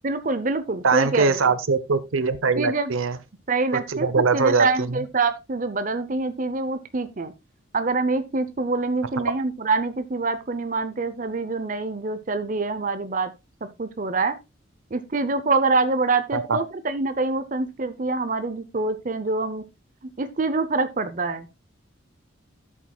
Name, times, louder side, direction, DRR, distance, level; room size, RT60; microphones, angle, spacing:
voice 1, 0.0-1.4 2.6-2.9 3.5-7.3 7.7-13.3 13.6-14.4 14.9-19.6 20.2-21.5, right 3 dB, 40° right, 0.6 m, -25 dB
voice 2, 0.8-3.2 3.9-5.0 9.2-9.3 16.3-16.6, right 4 dB, 80° right, 0.8 m, -22 dB
13.0 x 7.3 x 2.3 m
head